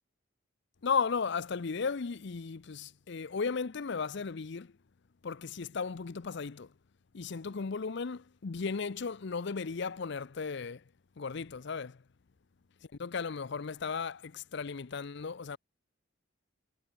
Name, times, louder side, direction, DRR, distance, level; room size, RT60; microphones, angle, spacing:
voice 1, 0.8-4.7 5.2-6.7 7.1-10.8 11.2-12.0 13.0-15.6, left 5 dB, 60° left, 0.6 m, -35 dB
head